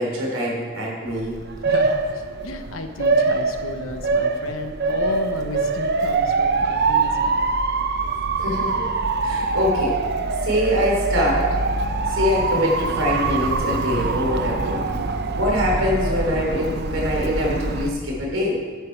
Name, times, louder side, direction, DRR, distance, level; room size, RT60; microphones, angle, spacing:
voice 1, 0.0-1.4 8.4-8.9 9.2-10.0 10.4-11.6 12.1-14.8 15.4-18.6, left 1 dB, 75° right, -2 dB, 3.6 m, -24 dB
Motor vehicle (road) / Siren, 1.1-17.9, right 3 dB, 55° right, 0.8 m, -23 dB
voice 2, 1.6-7.4, left 2 dB, 80° left, 6 dB, 1.1 m, -32 dB
12.0 x 9.3 x 4.6 m, 1.5 s
head